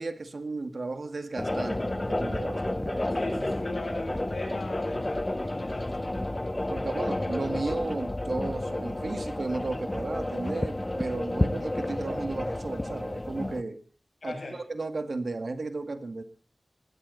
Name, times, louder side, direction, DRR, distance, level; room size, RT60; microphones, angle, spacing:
voice 1, 0.0-3.1 5.9-6.1 6.7-13.8 14.2-16.2, right 3 dB, 70° right, 9 dB, 2.0 m, -34 dB
sound 1, 1.4-13.6, left 1 dB, 25° left, 1.0 m, -31 dB
voice 2, 3.1-5.9 6.6-7.0 14.2-14.6, left 2 dB, 85° left, 2 dB, 7.6 m, -39 dB
20.0 x 16.5 x 4.1 m, 0.38 s
wide cardioid pair, 70°, 0 cm